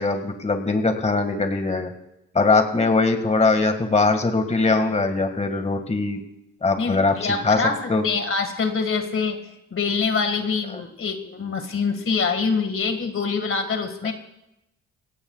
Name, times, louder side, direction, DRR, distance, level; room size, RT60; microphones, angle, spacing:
voice 1, 0.0-1.9 2.3-6.2 6.6-7.1 7.4-7.6 7.9-8.0, left 3 dB, 20° left, 6 dB, 2.0 m, -21 dB
voice 2, 6.8-14.1, left 5 dB, 45° left, 6 dB, 2.0 m, -25 dB
27.0 x 17.5 x 2.4 m, 0.88 s
cardioid pair, 90°, 30 cm